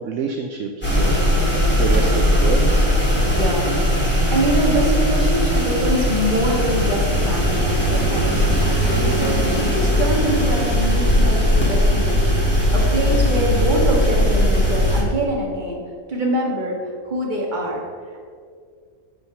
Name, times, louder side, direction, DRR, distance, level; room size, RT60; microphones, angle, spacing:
voice 1, 0.0-1.5 1.7-2.7, right 5 dB, 65° right, 5 dB, 0.9 m, -27 dB
sound 1, 0.8-15.0, equal, 5° left, 2.1 m, -18 dB
voice 2, 3.2-3.7 4.3-15.8 16.1-17.8 18.1-18.2, equal, 30° right, -2 dB, 1.8 m, -24 dB
9.3 x 4.5 x 6.8 m, 2.1 s
omnidirectional pair, 1.6 m